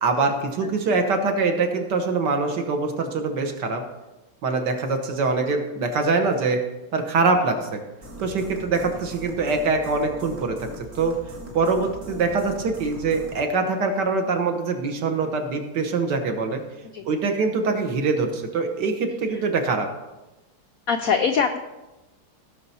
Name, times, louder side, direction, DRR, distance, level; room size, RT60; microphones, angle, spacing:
voice 1, 0.0-3.8 4.4-6.6 6.9-7.8 8.2-11.1 11.5-16.6 17.0-19.9, right 4 dB, 60° right, 5 dB, 1.7 m, -24 dB
voice 2, 0.6-1.1 5.5-5.6 12.1-12.3 16.9-17.1 19.3-19.4 20.9-21.6, left 6 dB, 85° left, 7 dB, 0.7 m, -25 dB
sound 1, 8.0-13.4, equal, 40° right, 1.8 m, -40 dB
17.0 x 6.0 x 4.2 m, 1.1 s
omnidirectional pair, 2.2 m